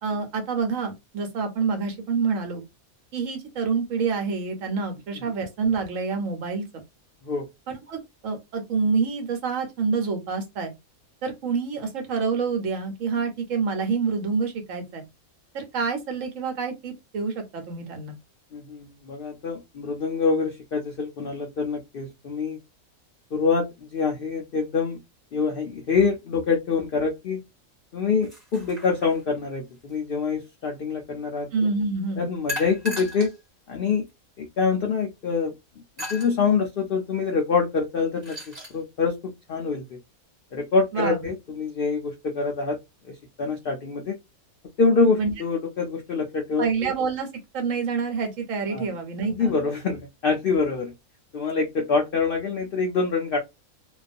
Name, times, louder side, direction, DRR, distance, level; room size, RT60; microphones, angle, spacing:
voice 1, 0.0-2.6 3.1-6.8 7.7-10.7 11.2-15.0 15.5-18.1 31.5-32.3 40.9-41.2 45.2-45.3 46.6-47.3 47.5-49.5, right 5 dB, 70° right, 1.0 m, -27 dB
voice 2, 18.5-22.6 23.3-25.0 25.3-27.4 27.9-31.5 32.2-33.3 33.7-34.1 34.4-35.5 36.1-40.0 40.5-42.8 43.0-44.2 44.8-46.9 48.7-49.0 49.3-50.9 51.3-53.4, left 4 dB, 80° left, 0.5 m, -25 dB
sound 1, 28.2-29.4 32.5-33.4 34.1-34.2 36.0-36.3 38.0-38.8, left 1 dB, 35° right, 0.9 m, -35 dB
2.4 x 2.3 x 2.4 m
omnidirectional pair, 1.5 m